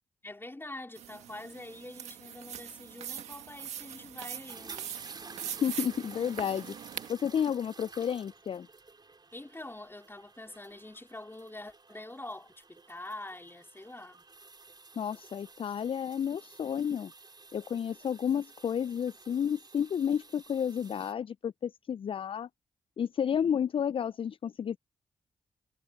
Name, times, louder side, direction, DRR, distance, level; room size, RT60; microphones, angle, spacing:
voice 1, 0.2-4.9 9.3-14.2, left 2 dB, 20° left, 3.9 m, -45 dB
sound 1, 1.0-7.1, right 9 dB, 90° right, 1.8 m, -42 dB
sound 2, 4.5-21.1, right 3 dB, 40° right, 4.4 m, -53 dB
voice 2, 5.6-6.8 7.1-8.7 15.0-17.1 17.5-22.5 23.0-24.8, left 8 dB, 55° left, 0.3 m, -31 dB
supercardioid pair, 40°, 11 cm